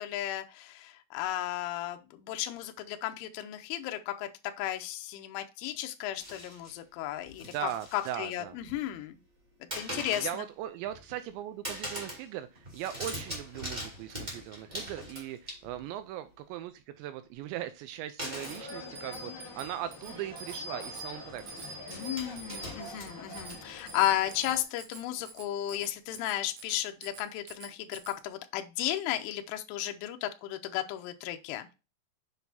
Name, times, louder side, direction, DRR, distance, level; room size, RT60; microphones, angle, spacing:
voice 1, 0.0-4.3 4.6-9.2 9.7-10.4 21.9-31.7, left 13 dB, 80° left, 6 dB, 3.2 m, -34 dB
sound 1, 6.2-6.7 7.2-8.2 8.5-9.0 9.7-10.4 10.8-11.3 11.6-12.3 12.5-15.9 18.2-18.7 19.6-19.7 20.0-20.2 21.3-24.0, equal, 15° right, 1.6 m, -42 dB
voice 2, 7.4-8.6 9.9-21.4, right 12 dB, 85° right, 11 dB, 2.6 m, -39 dB
sound 2, 18.3-24.6, left 2 dB, 35° left, 0.7 m, -46 dB
Bicycle bell, 18.5-28.2, right 1 dB, 65° right, 2.9 m, -46 dB
8.1 x 6.8 x 2.7 m, 0.30 s
omnidirectional pair, 5.6 m